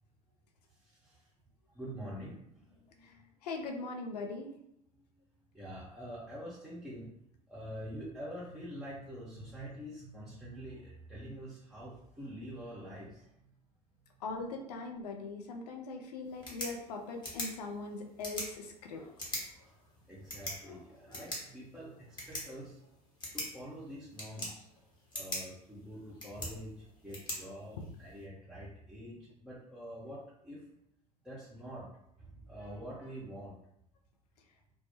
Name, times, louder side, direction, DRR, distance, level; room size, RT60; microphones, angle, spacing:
voice 1, 0.8-1.2 1.7-3.2 5.5-7.1 7.5-13.3 20.1-22.8 23.3-24.6 25.1-26.7 27.0-30.6 31.2-31.9 32.2-33.6, equal, 5° right, -9 dB, 0.6 m, -46 dB
voice 2, 3.0-4.5 14.2-19.1, left 3 dB, 70° left, 2 dB, 0.5 m, -41 dB
sound 1, 16.2-28.2, left 1 dB, 20° left, 0.9 m, -44 dB
2.1 x 2.0 x 2.9 m, 0.76 s
figure-of-eight pair, 70°, 21 cm